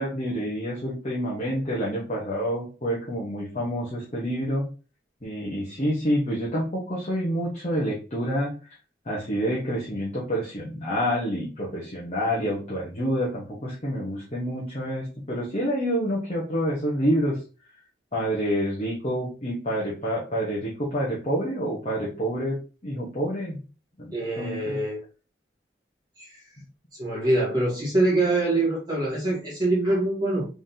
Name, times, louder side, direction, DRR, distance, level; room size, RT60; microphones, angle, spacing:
voice 1, 0.0-4.6 5.2-8.5 9.1-17.4 18.1-22.6 22.8-23.6 24.0-24.8, equal, 40° left, -6 dB, 1.1 m, -28 dB
voice 2, 24.1-25.0 26.2-26.4 27.0-30.5, right 2 dB, 20° right, -7 dB, 1.6 m, -24 dB
3.8 x 3.5 x 2.7 m, 0.35 s
head